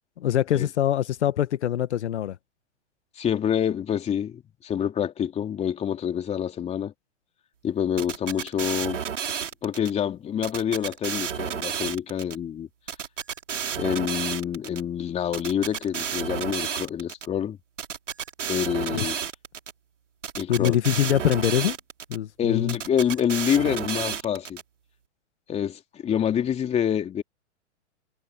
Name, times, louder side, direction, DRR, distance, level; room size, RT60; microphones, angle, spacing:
voice 1, 0.2-2.4 18.9-19.1 20.5-21.8 22.1-22.8, left 11 dB, 65° left, 1.6 m, -24 dB
voice 2, 3.2-6.9 7.6-9.0 9.6-12.7 13.8-17.6 18.5-19.2 20.4-20.8 22.4-24.6 25.5-27.2, left 9 dB, 15° left, 3.1 m, -27 dB
sound 1, 8.0-9.9 10.4-12.4 12.9-14.8 15.3-17.3 17.8-19.7 20.2-22.2 22.7-24.6, right 7 dB, 85° right, 3.1 m, -31 dB
hypercardioid pair, 135°, 36 cm